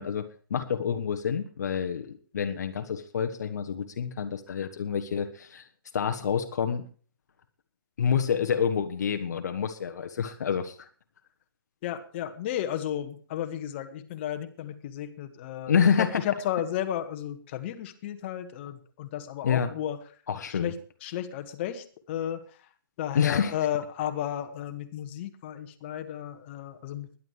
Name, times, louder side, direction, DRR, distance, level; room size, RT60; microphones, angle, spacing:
voice 1, 0.0-5.6 5.9-6.8 8.0-10.9 15.7-16.2 19.4-19.7 20.3-20.7 23.1-23.6, left 7 dB, 45° left, 7 dB, 1.4 m, -28 dB
voice 2, 11.8-20.0 20.5-22.4 23.0-27.2, left 11 dB, 30° left, 7 dB, 1.6 m, -33 dB
21.5 x 11.0 x 3.2 m, 0.41 s
figure-of-eight pair, 130°, 12 cm